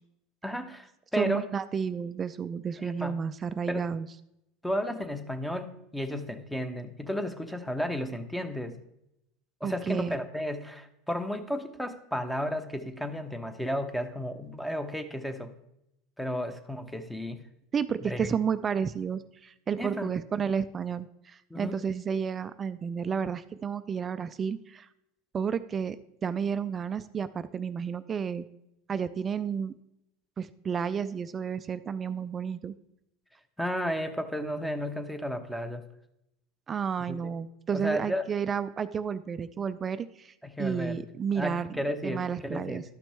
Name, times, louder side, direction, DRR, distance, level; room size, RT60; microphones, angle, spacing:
voice 1, 0.4-1.5 2.8-3.2 3.7-3.9 4.6-8.8 9.6-15.5 16.2-17.4 18.0-18.3 19.8-20.1 21.5-21.8 33.6-35.8 37.1-37.2 37.7-38.2 40.4-41.0 41.3-42.8, equal, 5° left, 8 dB, 0.9 m, -33 dB
voice 2, 1.2-4.1 9.6-10.2 17.7-24.9 25.3-28.5 28.9-29.8 30.4-32.7 36.7-41.7 42.0-42.8, right 7 dB, 30° right, 13 dB, 0.4 m, -31 dB
12.0 x 6.0 x 3.4 m, 0.82 s
supercardioid pair, 105°, 0 cm